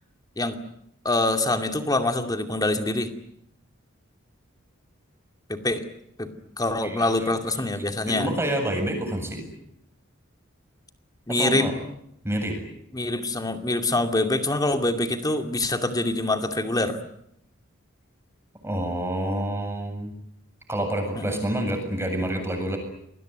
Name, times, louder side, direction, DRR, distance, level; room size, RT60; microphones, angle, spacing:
voice 1, 1.0-3.1 5.5-5.9 6.2-6.3 6.6-8.3 11.3-11.7 12.9-17.0 21.1-21.4, left 2 dB, 20° left, 6 dB, 2.4 m, -25 dB
voice 2, 8.1-9.4 11.4-11.7 12.2-12.6 18.6-20.1 20.7-22.8, right 1 dB, 10° right, 4 dB, 7.5 m, -27 dB
28.0 x 21.0 x 9.4 m, 0.77 s
head